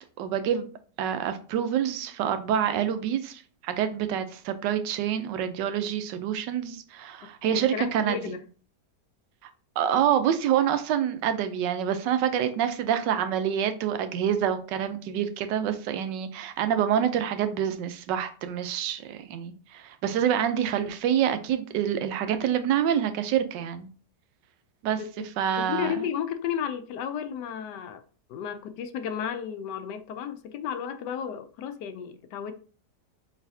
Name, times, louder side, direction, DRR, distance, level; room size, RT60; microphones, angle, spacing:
voice 1, 0.2-0.7 1.0-8.3 9.8-23.9 24.8-25.0 25.4-26.0, right 9 dB, 90° right, 1.3 m, -27 dB
voice 2, 7.2-8.4 25.0-25.1 25.5-28.0 28.3-32.5, left 8 dB, 80° left, 1.2 m, -33 dB
4.8 x 4.1 x 2.7 m
omnidirectional pair, 1.8 m